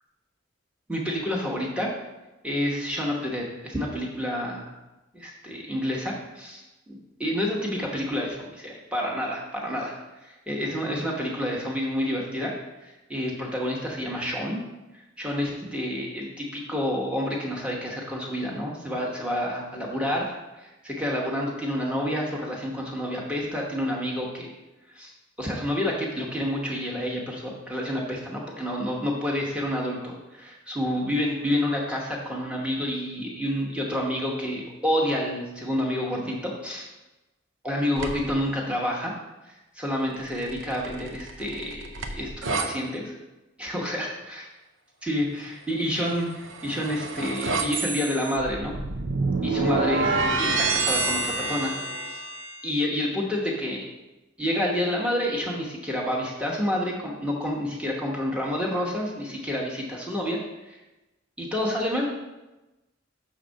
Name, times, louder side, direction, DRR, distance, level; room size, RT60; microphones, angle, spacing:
voice 1, 0.9-1.9 2.4-4.7 5.1-9.9 10.2-12.6 12.8-14.6 15.2-24.5 24.9-25.1 25.4-36.9 37.6-39.1 39.5-43.1 43.6-44.5 45.0-48.7 49.4-51.7 52.0-52.2 52.6-53.9 54.4-60.8 61.4-62.1, left 1 dB, 5° right, -3 dB, 1.0 m, -29 dB
sound 1, 38.0-38.4 40.3-42.7 46.2-52.6, right 3 dB, 80° right, 0.7 m, -28 dB
6.3 x 4.1 x 6.3 m, 1.1 s
head